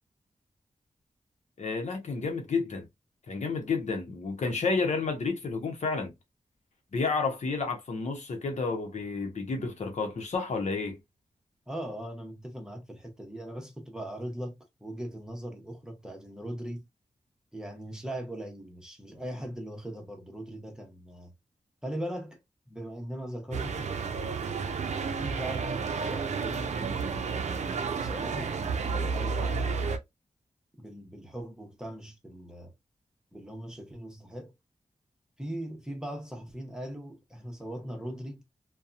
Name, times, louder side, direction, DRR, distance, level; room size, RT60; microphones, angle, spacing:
voice 1, 1.6-2.9 3.3-6.1 6.9-11.0, left 4 dB, 70° left, 0.8 m, -30 dB
voice 2, 11.7-16.9 17.5-21.3 21.8-22.4 22.7-24.0 24.8-27.2 27.5-29.8 30.8-32.7 33.3-34.5 35.4-38.4, right 1 dB, 5° right, 0.9 m, -40 dB
sound 1, 23.5-30.0, right 5 dB, 65° right, 0.5 m, -31 dB
2.8 x 2.2 x 2.4 m
wide cardioid pair, 120°, 13 cm